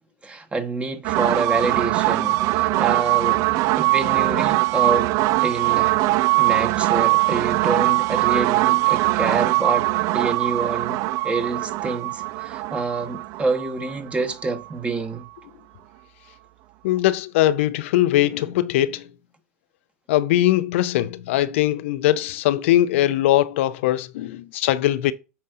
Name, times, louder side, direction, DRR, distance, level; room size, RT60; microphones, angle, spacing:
voice 1, 0.2-3.5 3.8-5.1 5.4-5.9 6.4-9.9 10.1-15.3, right 3 dB, 15° right, 1.3 m, -27 dB
sound 1, 1.0-14.7, right 19 dB, 50° right, 0.3 m, -21 dB
voice 2, 16.8-19.0 20.1-25.1, left 14 dB, 65° left, 0.4 m, -21 dB
8.6 x 5.3 x 2.6 m
hypercardioid pair, 85°, 7 cm